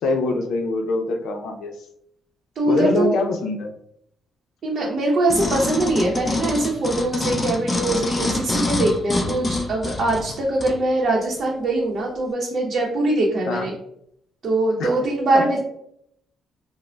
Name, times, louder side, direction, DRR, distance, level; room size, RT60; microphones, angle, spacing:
voice 1, 0.0-1.7 2.6-3.7 13.5-13.7 14.8-14.9 15.3-15.5, left 2 dB, 75° left, 4 dB, 0.6 m, -24 dB
voice 2, 2.6-3.1 4.6-13.7 14.4-15.6, right 2 dB, 55° right, -3 dB, 0.7 m, -22 dB
sound 1, 5.3-10.8 11.4-11.5, left 2 dB, 25° left, 0.5 m, -26 dB
4.8 x 2.1 x 2.2 m, 0.73 s
cardioid pair, 90°, 0 cm